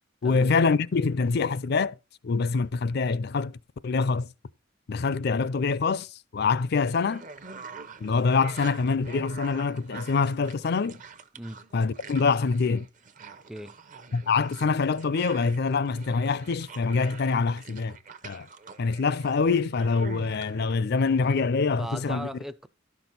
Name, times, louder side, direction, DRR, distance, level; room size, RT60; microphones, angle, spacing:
voice 1, 0.2-2.0 2.2-3.6 3.8-4.3 4.9-7.3 8.0-11.0 11.7-12.9 14.1-18.0 18.2-18.5 18.8-22.3, left 4 dB, 55° left, 0.4 m, -25 dB
sound 1, 6.9-20.8, right 5 dB, 40° right, 0.7 m, -46 dB
voice 2, 21.8-22.7, equal, ahead, 0.4 m, -38 dB
12.5 x 6.1 x 4.0 m
head